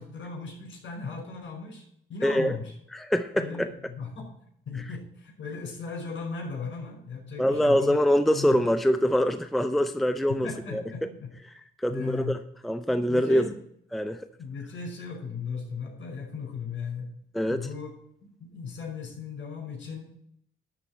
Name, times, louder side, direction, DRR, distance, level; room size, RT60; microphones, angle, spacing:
voice 1, 0.0-1.8 2.1-2.7 3.3-4.3 4.6-8.0 8.3-8.6 10.4-11.3 11.9-12.4 13.1-13.6 14.4-17.1 17.5-17.9 18.4-20.1, left 5 dB, 65° left, 0 dB, 5.3 m, -37 dB
voice 2, 2.2-2.6 2.9-3.7 7.4-10.5 10.7-10.8 11.8-12.4 12.6-13.5 13.9-14.2 17.3-17.7, equal, ahead, 9 dB, 0.6 m, -24 dB
12.0 x 4.4 x 8.0 m, 0.71 s
cardioid pair, 85°, 21 cm